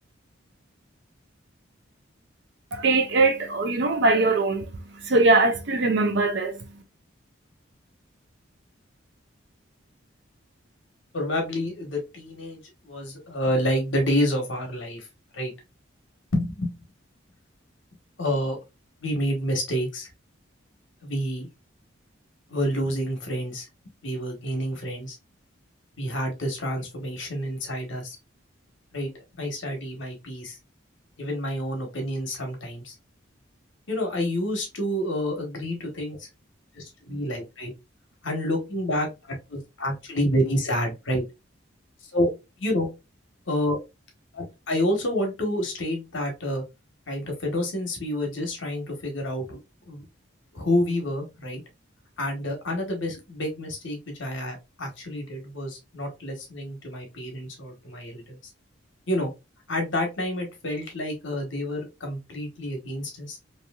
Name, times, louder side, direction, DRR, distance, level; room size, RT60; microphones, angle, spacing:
voice 1, 2.7-6.8, right 3 dB, 60° right, 0.6 m, -22 dB
voice 2, 11.1-15.1 15.3-15.5 16.3-16.7 18.2-18.6 19.0-20.1 21.0-21.5 22.5-23.7 24.0-25.2 26.0-28.2 28.9-29.1 29.4-30.6 31.2-32.9 33.9-36.3 36.7-37.7 38.2-41.2 42.1-42.3 42.6-42.9 43.5-43.8 44.3-46.6 47.1-49.6 49.9-50.1 50.5-51.6 52.2-58.4 59.1-59.3 59.7-63.4, equal, 70° left, 1.1 m, -28 dB
3.0 x 2.7 x 2.2 m
head